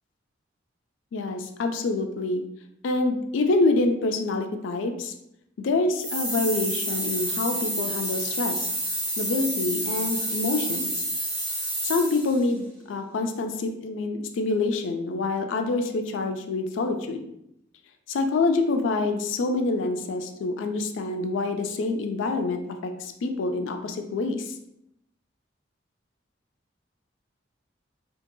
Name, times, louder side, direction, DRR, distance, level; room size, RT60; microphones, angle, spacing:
voice 1, 1.1-2.4 2.8-5.1 5.6-8.7 9.2-11.1 11.8-17.3 18.1-24.5, left 3 dB, 80° left, 5 dB, 0.4 m, -26 dB
sound 1, 5.9-12.4, right 1 dB, 15° right, 1.5 m, -29 dB
2.8 x 2.8 x 2.6 m, 0.77 s
head